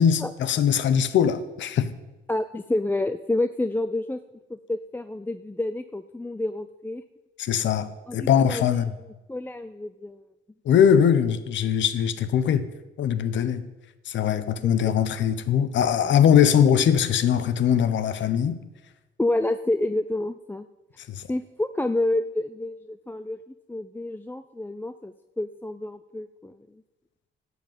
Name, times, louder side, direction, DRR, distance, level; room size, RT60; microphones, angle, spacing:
voice 1, 0.0-1.9 7.4-8.9 10.6-12.7 13.0-13.6 14.1-18.6 21.1-21.2, left 8 dB, 70° left, 1.0 m, -21 dB
voice 2, 2.3-4.2 4.5-7.0 8.1-8.7 9.3-10.2 14.8-14.9 19.2-20.7 21.3-26.5, left 2 dB, 10° left, 0.5 m, -29 dB
11.5 x 8.3 x 9.2 m
cardioid pair, 90°, 20 cm